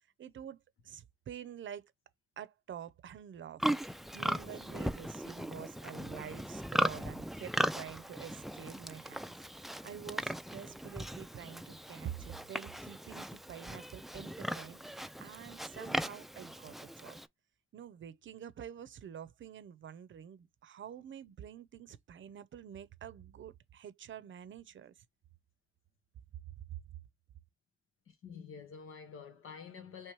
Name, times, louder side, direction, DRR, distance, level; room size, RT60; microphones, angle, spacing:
voice 1, 0.2-1.9 2.4-17.2 17.7-25.0 26.7-26.8, right 9 dB, 65° right, 0.6 m, -48 dB
Livestock farm animals working animals, 3.6-17.3, equal, ahead, 0.3 m, -38 dB
voice 2, 28.1-30.1, left 6 dB, 90° left, 1.2 m, -48 dB
3.2 x 3.0 x 4.6 m
cardioid pair, 60°, 21 cm